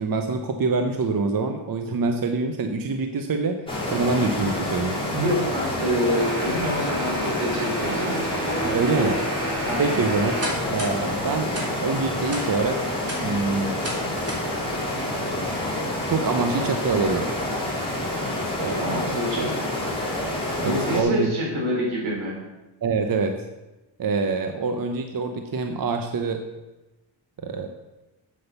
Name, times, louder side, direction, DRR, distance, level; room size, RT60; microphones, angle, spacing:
voice 1, 0.0-3.6 3.9-5.0 8.5-9.5 9.8-10.3 10.7-12.9 13.2-13.8 16.1-17.3 18.6-18.9 20.6-21.3 22.8-23.5 24.0-26.4 27.4-27.7, right 4 dB, 45° right, 5 dB, 0.9 m, -25 dB
sound 1, 3.7-21.0, left 1 dB, 10° left, 3.1 m, -28 dB
voice 2, 5.1-8.1 9.6-9.9 18.6-19.5 20.6-22.3, equal, 85° right, -3 dB, 4.6 m, -26 dB
sound 2, 6.1-11.0 11.5-11.7 12.3-12.4 12.9-13.2 13.8-14.0 14.3-14.4, right 1 dB, 30° right, 3.3 m, -31 dB
8.1 x 7.7 x 6.8 m, 1.0 s
wide cardioid pair, 110°, 47 cm